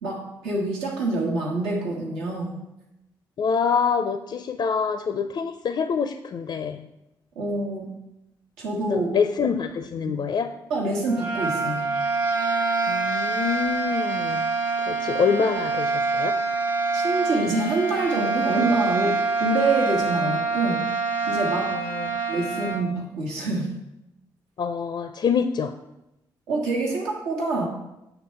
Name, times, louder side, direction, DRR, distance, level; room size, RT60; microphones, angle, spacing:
voice 1, 0.0-2.6 7.3-7.9 8.6-9.1 10.0-10.1 10.7-11.9 16.9-20.9 21.3-21.7 22.3-23.7 26.5-27.7, right 2 dB, 85° right, -2 dB, 1.2 m, -26 dB
voice 2, 3.4-6.9 8.9-10.5 12.9-14.5 14.9-16.4 21.7-22.2 24.6-25.7, left 6 dB, 50° left, 9 dB, 0.5 m, -26 dB
sound 1, 11.0-22.9, right 4 dB, 45° right, 1.3 m, -26 dB
7.9 x 3.4 x 5.6 m, 0.91 s
hypercardioid pair, 45°, 10 cm